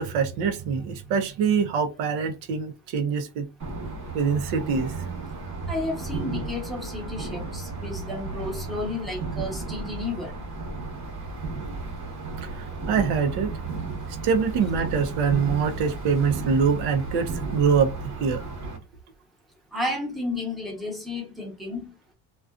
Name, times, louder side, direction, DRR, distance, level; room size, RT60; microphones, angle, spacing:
voice 1, 0.0-3.4 4.1-4.9 12.9-13.5 14.2-17.9 18.2-18.4, right 6 dB, 80° right, 0.7 m, -24 dB
sound 1, 3.6-18.8, right 3 dB, 45° right, 1.1 m, -34 dB
voice 2, 5.7-10.4 19.7-21.9, left 2 dB, ahead, 0.8 m, -32 dB
2.4 x 2.3 x 2.3 m
cardioid pair, 125°, 40 cm